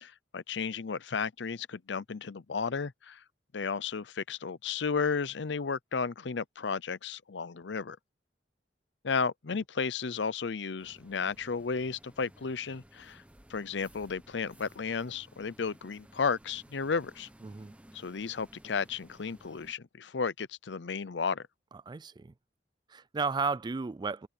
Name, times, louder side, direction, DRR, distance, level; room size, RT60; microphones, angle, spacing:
voice 1, 0.0-3.2 3.5-8.0 9.0-13.2 13.5-17.3 17.9-21.5, left 5 dB, 75° left, 0.6 m, -33 dB
sound 1, 10.8-19.7, right 1 dB, 5° right, 1.2 m, -57 dB
voice 2, 17.4-17.7 21.9-22.3 22.9-24.3, right 4 dB, 25° right, 0.3 m, -33 dB
head